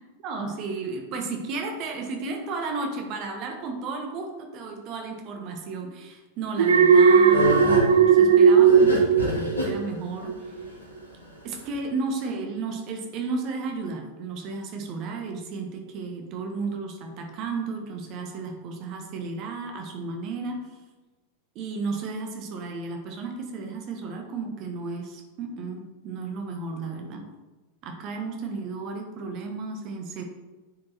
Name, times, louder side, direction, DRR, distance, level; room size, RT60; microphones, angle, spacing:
voice 1, 0.2-10.4 11.4-20.7 21.5-27.3 27.8-30.2, right 4 dB, 40° right, 3 dB, 1.5 m, -33 dB
sound 1, 6.6-11.8, left 1 dB, 80° left, 2.4 m, -29 dB
Alarm, 6.6-9.9 10.3-10.6, right 6 dB, 70° right, 0.6 m, -17 dB
9.7 x 5.4 x 4.4 m, 1.2 s
figure-of-eight pair, 90°, 0 cm